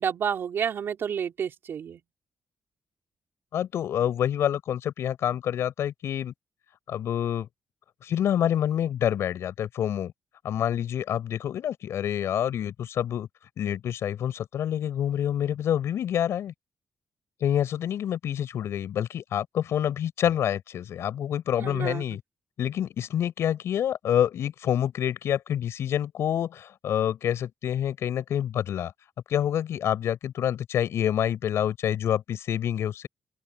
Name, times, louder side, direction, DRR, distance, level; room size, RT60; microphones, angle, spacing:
voice 1, 0.0-2.0 21.6-22.0, right 8 dB, 60° right, 3.8 m, -30 dB
voice 2, 3.5-6.3 6.9-7.5 8.0-10.1 10.4-13.3 13.6-16.5 17.4-22.2 22.6-28.9 29.3-33.1, left 10 dB, 85° left, 5.4 m, -27 dB
open air
wide cardioid pair, 145°, 4 cm